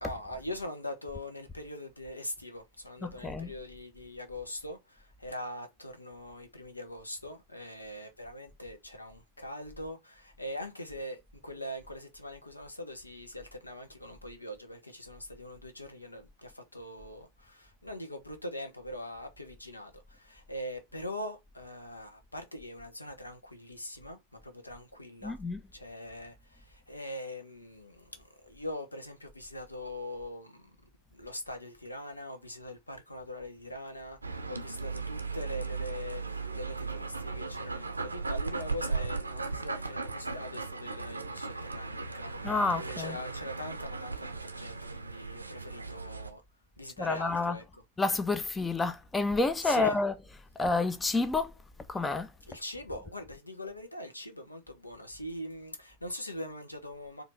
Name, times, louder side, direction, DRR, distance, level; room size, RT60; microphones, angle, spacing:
voice 1, 0.0-25.4 25.7-30.7 31.1-42.5 42.8-46.4 46.8-47.8 49.6-50.0 52.5-57.2, left 1 dB, 85° left, 0.9 m, -42 dB
voice 2, 3.0-3.5 25.2-25.6 42.4-43.2 47.0-47.6 48.0-50.1 50.6-51.5 51.9-52.3, left 3 dB, 10° left, 0.4 m, -29 dB
sound 1, 34.2-46.3, right 4 dB, 80° right, 0.5 m, -37 dB
4.5 x 2.7 x 3.9 m
figure-of-eight pair, 90°, 0 cm